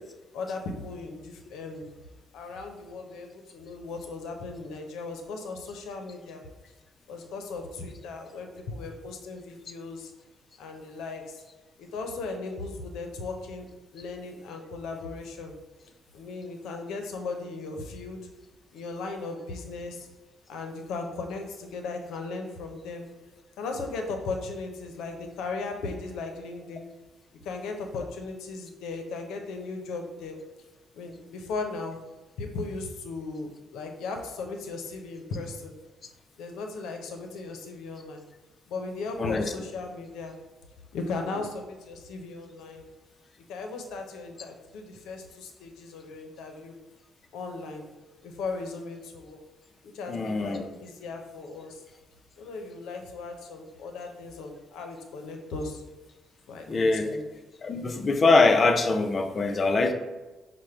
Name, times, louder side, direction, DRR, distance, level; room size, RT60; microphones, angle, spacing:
voice 1, 0.3-1.9 2.3-6.4 7.1-10.1 10.6-11.4 11.8-13.7 13.9-15.6 16.1-18.2 18.7-20.1 20.5-23.1 23.6-26.9 27.4-30.4 30.9-32.0 32.4-35.7 36.4-38.2 38.7-40.4 40.9-42.9 43.5-46.8 47.3-47.9 48.2-49.4 49.8-51.8 52.4-55.8 56.5-57.3, left 3 dB, 85° left, 4 dB, 0.6 m, -37 dB
voice 2, 39.2-39.5 50.1-50.6 56.7-57.2 57.6-59.9, left 3 dB, 40° left, 6 dB, 0.5 m, -23 dB
4.9 x 2.1 x 4.3 m, 1.1 s
cardioid pair, 90°, 0 cm